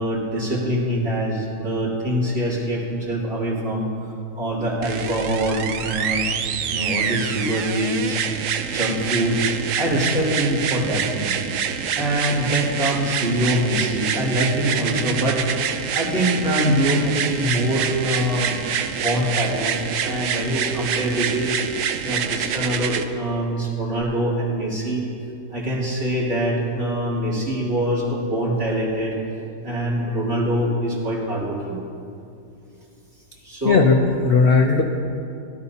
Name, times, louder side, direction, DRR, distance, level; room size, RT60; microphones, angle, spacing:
voice 1, 0.0-3.9 4.3-6.4 6.6-8.2 8.7-9.4 9.7-11.3 11.9-15.4 15.9-18.5 18.8-21.5 22.0-25.0 25.5-29.2 29.6-31.8 33.4-33.9, right 1 dB, 45° right, -9 dB, 3.4 m, -24 dB
sound 1, 4.8-23.0 24.0-24.1, right 8 dB, 65° right, 0.8 m, -26 dB
voice 2, 33.6-34.8, left 4 dB, 60° left, 2 dB, 0.6 m, -16 dB
18.0 x 12.5 x 2.8 m, 2.7 s
omnidirectional pair, 1.8 m